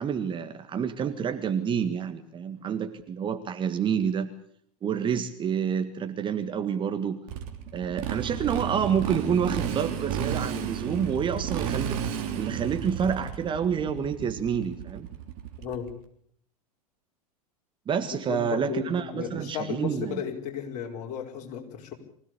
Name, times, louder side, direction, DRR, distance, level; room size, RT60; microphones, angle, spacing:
voice 1, 0.0-4.3 4.8-7.2 7.7-15.1 17.9-20.2, right 7 dB, 25° right, 8 dB, 1.7 m, -28 dB
Motorcycle, 7.3-15.9, right 9 dB, 45° right, 3.6 m, -32 dB
voice 2, 15.6-15.9 18.1-21.9, left 8 dB, 40° left, 1 dB, 5.3 m, -35 dB
24.5 x 17.0 x 8.5 m, 0.66 s
figure-of-eight pair, 90°, 20 cm